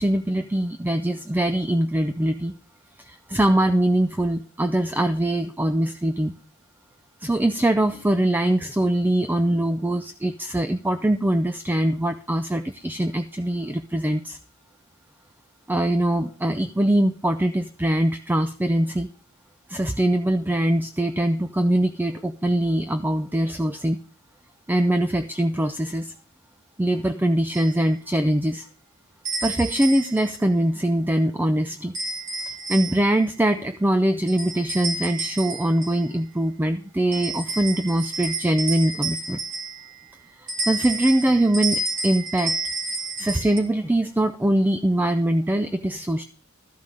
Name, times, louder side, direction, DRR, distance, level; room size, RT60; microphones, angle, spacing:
voice 1, 0.0-2.5 3.0-6.3 7.2-14.4 15.7-19.1 19.7-24.0 24.7-26.1 26.8-28.6 29.4-31.9 32.5-39.4 40.4-42.6 43.2-46.2, right 1 dB, 10° right, 8 dB, 0.4 m, -22 dB
sound 1, 27.5-27.7 29.3-30.3 31.9-33.2 34.3-36.1 37.1-40.0 40.5-43.6, right 3 dB, 35° right, 3.1 m, -30 dB
13.0 x 5.5 x 6.4 m, 0.42 s
head